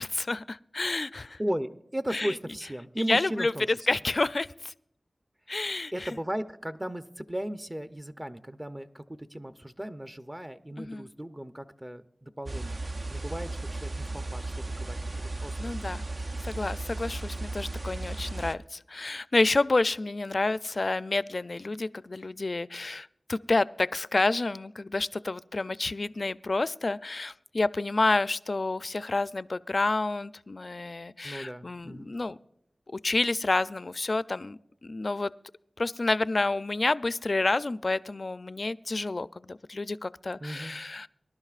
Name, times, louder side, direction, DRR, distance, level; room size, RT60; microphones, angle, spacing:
voice 1, 0.0-1.4 2.1-2.4 3.0-4.7 5.5-6.1 10.8-11.1 15.6-16.0 16.4-32.4 32.9-35.3 35.8-41.1, left 2 dB, 60° left, 15 dB, 0.4 m, -29 dB
voice 2, 1.4-3.6 5.9-12.8 13.0-14.4 14.8-15.7 31.2-32.1 40.4-40.8, equal, 20° right, 9 dB, 0.6 m, -36 dB
sound 1, 12.5-18.6, right 2 dB, 60° right, 0.5 m, -35 dB
24.0 x 11.5 x 2.4 m, 0.74 s
cardioid pair, 45°, 0 cm